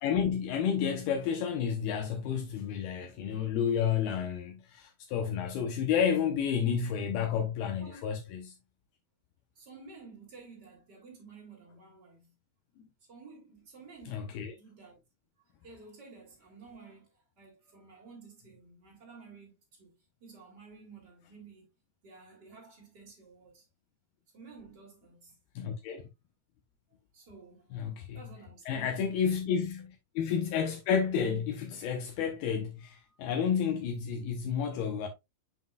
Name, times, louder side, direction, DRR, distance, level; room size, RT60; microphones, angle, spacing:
voice 1, 0.0-8.5 14.1-14.5 25.6-26.0 27.7-28.2 28.7-29.8 30.2-35.1, left 7 dB, 80° left, 2.7 m, -31 dB
voice 2, 9.5-12.3 13.1-14.3 14.5-15.0 15.4-21.7 22.0-23.7 24.3-25.4 27.1-29.2 29.5-29.7 32.8-33.3, right 4 dB, 30° right, 2.5 m, -53 dB
7.3 x 5.8 x 2.3 m
omnidirectional pair, 4.6 m